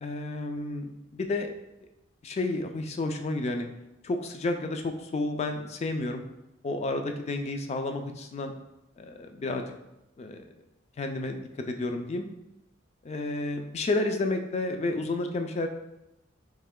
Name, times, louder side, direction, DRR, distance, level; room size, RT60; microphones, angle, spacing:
voice 1, 0.0-1.5 2.2-3.7 4.0-6.2 6.6-8.5 9.0-9.7 10.2-10.4 11.0-12.3 13.0-15.7, left 2 dB, 30° left, 5 dB, 0.3 m, -31 dB
3.2 x 2.8 x 3.6 m, 0.90 s
head